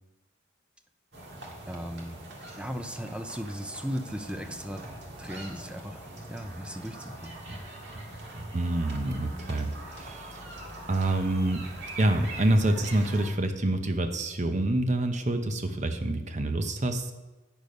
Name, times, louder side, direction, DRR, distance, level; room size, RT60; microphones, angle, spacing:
sound 1, 1.1-13.3, right 1 dB, 55° right, 1.9 m, -43 dB
voice 1, 1.7-2.2 2.6-4.8 5.2-7.3, equal, 5° right, 7 dB, 0.5 m, -37 dB
voice 2, 8.5-10.4 10.9-11.6 12.0-17.1, right 1 dB, 35° right, 7 dB, 0.8 m, -27 dB
9.2 x 6.7 x 5.2 m, 1.1 s
head